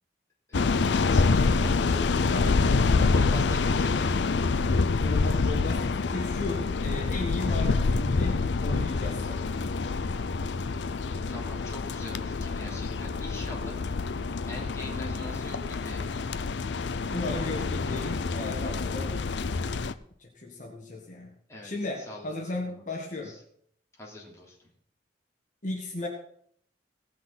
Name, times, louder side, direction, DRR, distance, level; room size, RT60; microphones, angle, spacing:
sound 1, 0.5-19.9, left 4 dB, 75° left, 0.5 m, -27 dB
voice 1, 0.5-2.1 3.1-4.1 11.3-13.8 14.5-16.1 21.5-21.7 22.0-22.3 22.6-22.8 23.2-23.4 24.0-24.6, left 1 dB, 15° left, -3 dB, 3.1 m, -42 dB
voice 2, 2.3-3.4 4.8-9.6 17.1-19.1 20.2-21.3 21.6-23.3 25.6-26.1, left 2 dB, 45° left, -1 dB, 1.8 m, -35 dB
17.5 x 6.1 x 5.8 m, 0.66 s
head